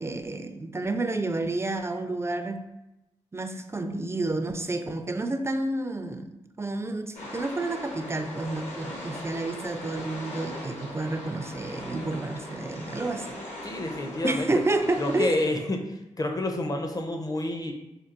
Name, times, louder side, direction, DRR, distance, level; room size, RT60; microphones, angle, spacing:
voice 1, 0.0-2.6 3.3-13.3 14.2-15.4, right 2 dB, 20° right, 7 dB, 0.4 m, -30 dB
sound 1, 7.1-15.2, left 1 dB, 65° left, 1.1 m, -40 dB
voice 2, 13.6-14.4 15.0-15.9 16.2-17.7, left 2 dB, 30° left, 4 dB, 0.6 m, -28 dB
4.5 x 2.3 x 2.5 m, 0.94 s
supercardioid pair, 45°, 12 cm